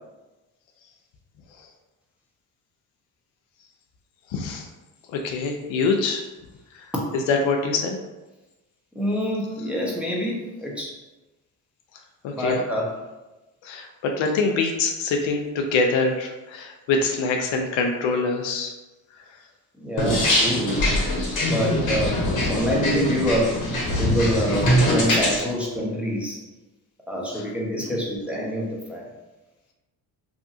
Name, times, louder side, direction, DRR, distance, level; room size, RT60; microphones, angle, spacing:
voice 1, 4.3-4.7 5.1-6.2 6.7-6.9 7.1-8.0 12.2-12.6 13.6-18.7 22.0-22.1 22.6-22.7 27.3-27.5 27.8-28.0, left 4 dB, 70° left, 3 dB, 0.5 m, -25 dB
voice 2, 9.0-10.9 12.3-12.9 19.8-20.8 21.5-22.2 22.5-23.5 24.0-24.7 24.9-26.4 27.1-29.0, equal, 5° right, -4 dB, 0.8 m, -26 dB
sound 1, 20.0-25.4, left 1 dB, 40° left, 1.0 m, -22 dB
2.7 x 2.5 x 2.6 m, 1.1 s
supercardioid pair, 60°, 49 cm